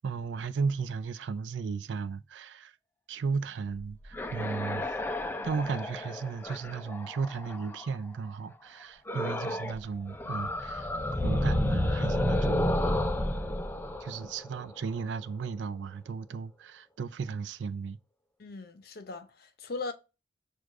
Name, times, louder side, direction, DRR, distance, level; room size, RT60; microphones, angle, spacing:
voice 1, 0.0-2.7 3.1-5.0 5.4-10.9 11.2-12.8 14.0-18.0, right 5 dB, 85° right, 0.4 m, -35 dB
sound 1, 3.8-8.0 9.1-9.8 10.1-15.0, left 1 dB, 10° left, 0.3 m, -31 dB
voice 2, 18.4-19.9, left 3 dB, 60° left, 0.6 m, -39 dB
6.2 x 2.3 x 2.4 m
head